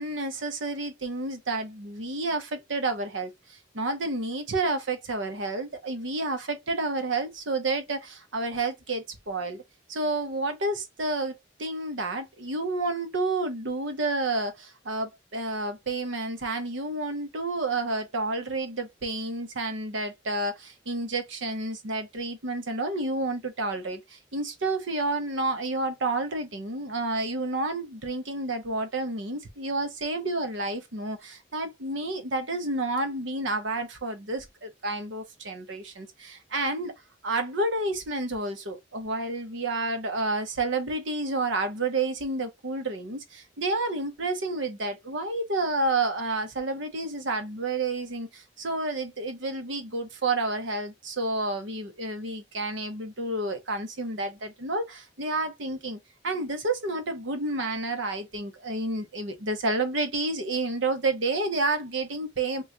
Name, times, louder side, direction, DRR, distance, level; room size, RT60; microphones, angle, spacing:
voice 1, 0.0-9.6 9.9-36.9 37.2-56.0 56.2-62.6, right 2 dB, 90° right, 0.9 m, -30 dB
3.1 x 2.4 x 3.6 m
head